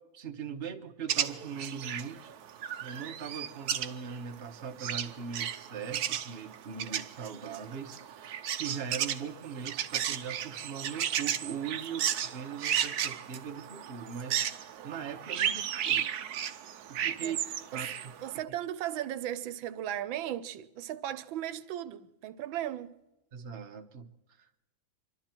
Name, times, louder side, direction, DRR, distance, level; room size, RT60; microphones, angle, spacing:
voice 1, 0.1-16.2 16.5-17.4 17.7-17.9 23.3-24.1 24.4-24.5, right 7 dB, 35° right, 1.2 m, -40 dB
sound 1, 1.1-18.4, right 10 dB, 65° right, 1.1 m, -34 dB
voice 2, 18.2-23.0, right 11 dB, 85° right, 1.5 m, -36 dB
26.5 x 12.5 x 4.4 m
omnidirectional pair, 2.1 m